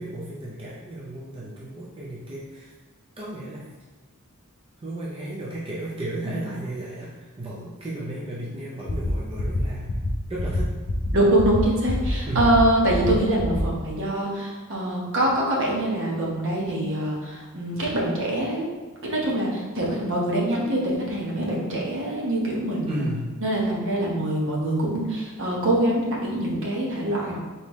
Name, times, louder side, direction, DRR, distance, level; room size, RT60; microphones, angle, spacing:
voice 1, 0.0-2.7 3.2-3.7 4.8-9.9 10.3-10.8 12.3-12.6 22.9-23.3, right 1 dB, 25° right, -6 dB, 0.5 m, -34 dB
sound 1, 8.9-9.1 9.4-9.6 9.9-10.1 10.4-10.6 10.9-11.1 11.4-11.6 11.9-12.1 12.4-12.6 12.9-13.1 13.4-13.6, left 3 dB, 40° left, 0.5 m, -27 dB
voice 2, 11.1-18.7 19.0-23.0 23.4-27.3, right 1 dB, 60° right, -3 dB, 1.0 m, -24 dB
3.9 x 3.6 x 3.0 m, 1.3 s
head